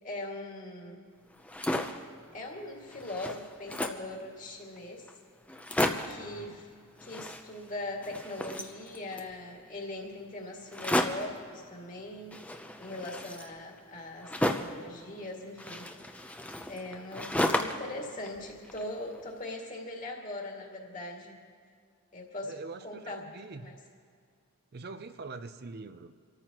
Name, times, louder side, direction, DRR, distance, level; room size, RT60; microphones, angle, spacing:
voice 1, 0.0-1.1 2.3-5.1 6.0-6.7 7.0-12.4 12.8-15.9 16.7-21.4 22.1-22.5 22.8-23.2 23.6-23.8, left 1 dB, 35° left, 0 dB, 2.2 m, -40 dB
sound 1, 1.3-2.1 2.6-2.7 2.9-4.1 4.8-4.9 5.1-5.2 5.5-6.2 7.0-7.8 8.0-9.3 10.7-11.4 12.3-14.8 15.6-17.9 18.3-19.2, left 1 dB, 5° left, 0.5 m, -33 dB
voice 2, 6.1-6.6 17.2-17.3 22.4-23.7 24.7-26.1, right 3 dB, 45° right, 10 dB, 0.5 m, -44 dB
25.5 x 14.0 x 3.0 m, 2.2 s
head